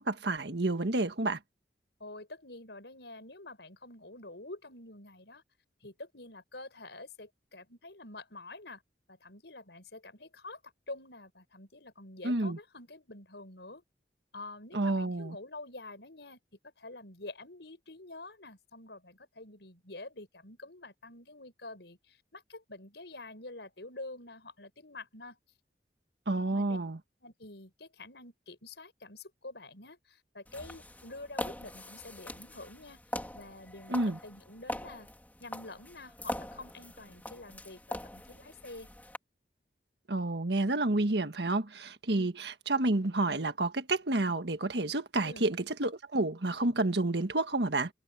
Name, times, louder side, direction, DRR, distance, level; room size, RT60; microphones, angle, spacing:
voice 1, 0.0-1.4 12.2-12.6 14.7-15.3 26.3-27.0 33.9-34.2 40.1-47.9, right 2 dB, 75° right, 1.6 m, -30 dB
voice 2, 2.0-5.4 5.8-8.8 9.1-10.6 10.9-13.8 14.3-16.4 16.8-25.4 26.5-26.8 27.2-33.0 33.3-35.1 35.4-38.9 42.1-42.3 45.2-45.5, left 2 dB, 75° left, 5.8 m, -47 dB
sound 1, 30.5-39.2, left 1 dB, 10° left, 3.6 m, -42 dB
head